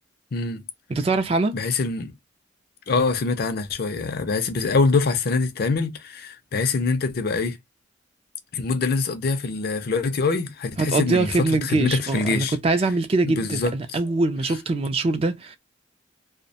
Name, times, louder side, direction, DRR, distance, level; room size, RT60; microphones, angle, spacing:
voice 1, 0.3-0.6 1.5-2.2 2.9-7.6 8.5-12.6 13.2-14.0, left 4 dB, 55° left, 0.4 m, -24 dB
voice 2, 0.9-1.5 10.8-15.6, right 3 dB, 30° right, 0.3 m, -23 dB
2.3 x 2.0 x 2.6 m
head